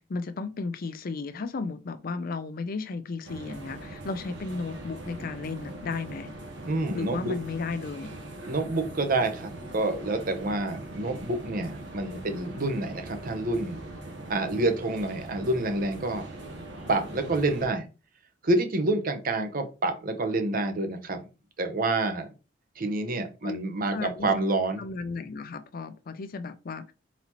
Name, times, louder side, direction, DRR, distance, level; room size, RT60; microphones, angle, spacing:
voice 1, 0.0-6.3 6.9-8.1 23.4-23.6 23.9-24.3 24.8-26.9, left 4 dB, 50° left, 0.5 m, -34 dB
sound 1, 3.2-17.7, right 2 dB, 75° right, 1.1 m, -41 dB
voice 2, 6.7-7.4 8.5-13.8 14.3-16.3 16.9-17.8 18.4-21.3 21.6-22.3 22.8-24.8, right 2 dB, 50° right, 0.8 m, -28 dB
4.1 x 4.0 x 2.9 m
head